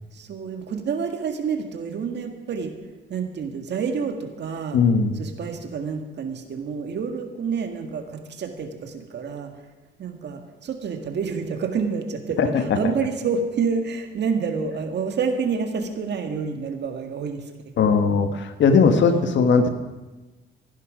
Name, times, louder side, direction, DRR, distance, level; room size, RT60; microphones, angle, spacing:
voice 1, 0.1-2.7 3.1-4.8 5.2-9.5 10.0-17.4 17.9-18.0 19.0-19.4, right 5 dB, 60° right, 5 dB, 1.9 m, -28 dB
voice 2, 4.7-5.2 12.4-12.9 17.8-19.7, left 5 dB, 70° left, 7 dB, 1.5 m, -19 dB
16.0 x 11.5 x 5.1 m, 1.2 s
cardioid pair, 90°, 20 cm